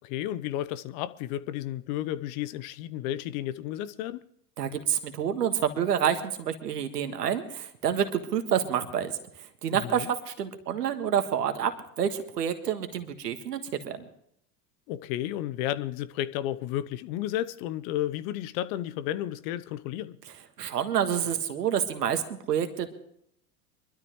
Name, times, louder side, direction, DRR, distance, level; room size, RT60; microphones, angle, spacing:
voice 1, 0.0-4.2 9.7-10.1 14.9-20.2, left 13 dB, 60° left, 0.9 m, -32 dB
voice 2, 4.6-9.1 9.6-11.7 12.0-14.0 20.6-22.9, right 9 dB, 85° right, 1.8 m, -28 dB
24.0 x 13.0 x 3.1 m
hypercardioid pair, 85°, 47 cm